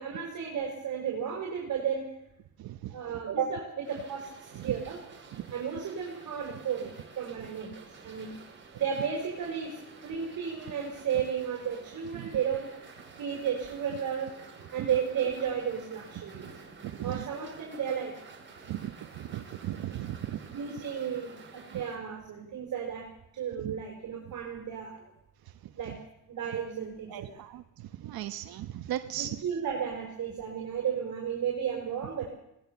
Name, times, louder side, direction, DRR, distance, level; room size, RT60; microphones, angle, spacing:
voice 1, 0.0-2.1 2.9-5.0 5.5-8.3 8.7-12.7 13.2-14.3 14.7-16.5 17.0-18.2 20.5-25.0 25.8-26.0 26.3-27.4 29.4-32.3, right 7 dB, 55° right, 0 dB, 5.2 m, -33 dB
voice 2, 2.6-2.9 4.5-4.7 5.3-5.4 12.1-12.3 16.3-16.5 16.8-17.3 18.7-20.4 21.7-21.8 23.6-23.8 25.9-26.0 27.1-29.4, right 13 dB, 75° right, 9 dB, 1.1 m, -37 dB
sound 1, 3.8-22.0, right 4 dB, 30° right, 5.4 m, -51 dB
20.5 x 18.5 x 7.0 m, 0.83 s
cardioid pair, 110°, 37 cm